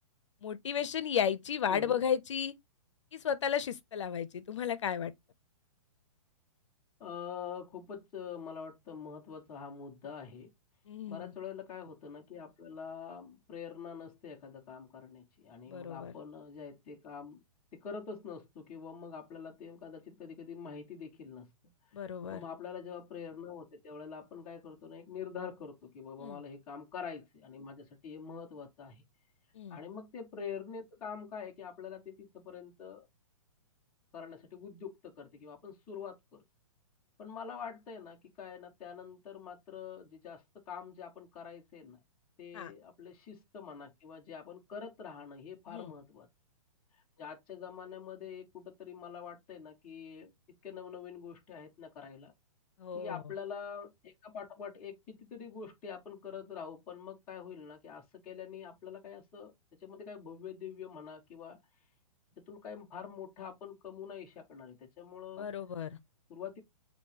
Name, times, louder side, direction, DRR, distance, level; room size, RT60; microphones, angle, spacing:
voice 1, 0.4-2.5 3.1-5.1 10.9-11.2 15.7-16.1 21.9-22.4 26.2-26.4 29.5-29.8 42.5-42.7 45.7-45.9 52.8-53.2 65.4-66.0, left 8 dB, 55° left, 0.6 m, -34 dB
voice 2, 1.7-2.0 7.0-10.5 11.1-17.4 17.7-21.5 22.0-29.0 29.7-33.1 34.1-36.4 37.2-42.0 42.4-46.3 47.2-50.3 50.6-52.3 52.9-59.5 59.8-61.6 62.5-65.5 66.3-66.6, left 6 dB, 5° left, 0.4 m, -45 dB
6.3 x 2.7 x 2.8 m
hypercardioid pair, 180°, 18 cm